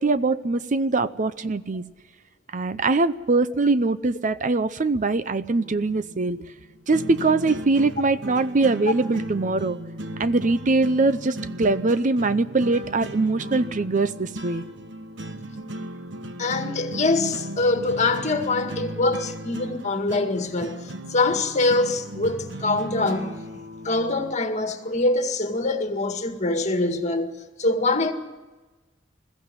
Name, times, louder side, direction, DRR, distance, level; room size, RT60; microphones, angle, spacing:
voice 1, 0.0-1.8 2.5-6.4 6.9-9.8 10.2-14.6, right 3 dB, 45° right, 0.6 m, -22 dB
sound 1, 5.5-24.3, right 1 dB, 70° right, 1.4 m, -36 dB
voice 2, 16.4-23.4 23.8-28.1, left 2 dB, 40° left, 2.0 m, -24 dB
21.5 x 15.5 x 9.6 m
head